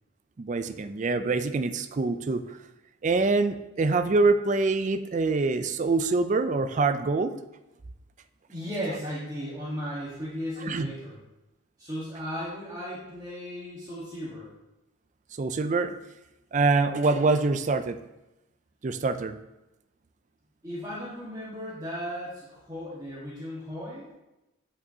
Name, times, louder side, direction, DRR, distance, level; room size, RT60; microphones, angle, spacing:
voice 1, 0.4-2.6 3.0-7.3 10.6-10.9 15.4-15.9 16.5-18.0 18.8-19.4, right 3 dB, 35° right, 10 dB, 0.3 m, -25 dB
voice 2, 8.5-11.2 11.8-14.5 20.6-24.1, equal, 20° right, -7 dB, 1.3 m, -36 dB
8.9 x 5.6 x 2.8 m, 0.96 s
head